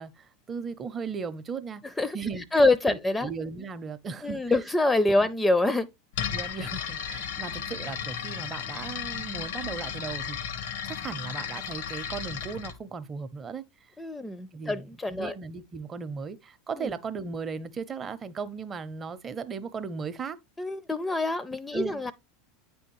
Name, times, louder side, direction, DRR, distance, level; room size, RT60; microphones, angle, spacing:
voice 1, 0.0-1.8 2.1-2.4 2.9-4.4 5.1-5.3 6.3-10.4 10.9-13.6 14.5-20.4 21.7-22.1, right 5 dB, 30° right, 0.6 m, -37 dB
voice 2, 2.5-3.3 4.2-5.9 14.0-15.3 16.8-16.9 20.6-22.1, left 2 dB, 10° left, 0.4 m, -25 dB
sound 1, 6.1-12.8, left 8 dB, 70° left, 0.7 m, -34 dB
9.0 x 3.5 x 3.0 m
hypercardioid pair, 85°, 0 cm